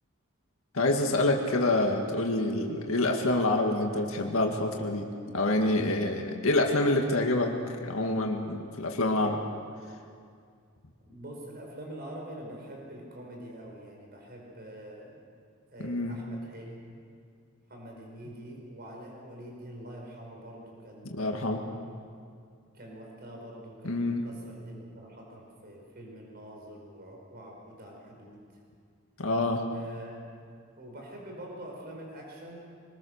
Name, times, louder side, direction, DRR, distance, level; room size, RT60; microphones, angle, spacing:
voice 1, 0.7-5.1 5.3-7.5 7.8-9.4 15.8-16.2 21.0-21.6 23.8-24.2 29.2-29.6, left 2 dB, 85° left, 2 dB, 1.9 m, -27 dB
voice 2, 11.0-15.3 15.7-17.0 17.7-21.4 22.7-28.4 29.7-30.4 30.7-32.6, right 1 dB, 50° right, 0 dB, 4.9 m, -45 dB
25.0 x 20.5 x 6.5 m, 2.2 s
head